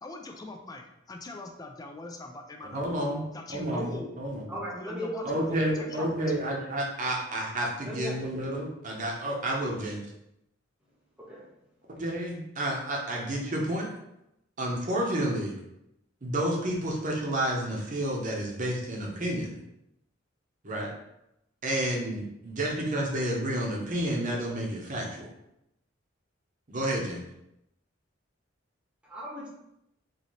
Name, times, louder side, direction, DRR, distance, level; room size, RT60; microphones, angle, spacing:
voice 1, 0.0-3.0 3.3-4.2 4.7-6.3, left 2 dB, 20° left, 3 dB, 0.4 m, -42 dB
voice 2, 2.7-3.2 3.5-4.4 5.2-10.0 11.9-13.9 14.6-15.5 16.2-19.6 20.6-20.9 21.6-25.3 26.7-27.2, right 1 dB, 40° right, -1 dB, 0.8 m, -30 dB
voice 3, 4.5-6.8 7.8-8.5 11.2-11.5 29.0-29.5, equal, 5° right, -6 dB, 1.0 m, -38 dB
3.1 x 2.7 x 4.0 m, 0.84 s
head